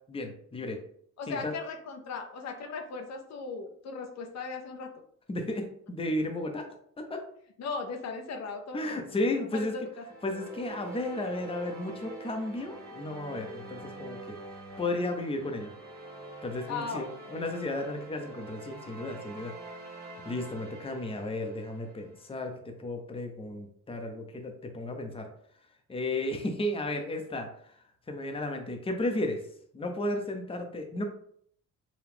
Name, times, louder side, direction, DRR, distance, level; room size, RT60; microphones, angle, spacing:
voice 1, 0.1-0.8 1.3-1.5 5.3-6.7 7.0-7.2 8.7-9.7 10.2-14.4 14.8-15.7 16.4-19.5 20.2-25.3 25.9-27.5 28.1-29.4 29.7-31.0, left 1 dB, 20° left, 4 dB, 0.8 m, -33 dB
voice 2, 1.2-4.9 7.6-9.0 9.3-10.0 16.7-17.1, left 4 dB, 60° left, 3 dB, 0.7 m, -37 dB
sound 1, 9.9-22.3, right 3 dB, 30° right, 1.7 m, -45 dB
4.9 x 2.3 x 3.5 m, 0.63 s
cardioid pair, 90°, 30 cm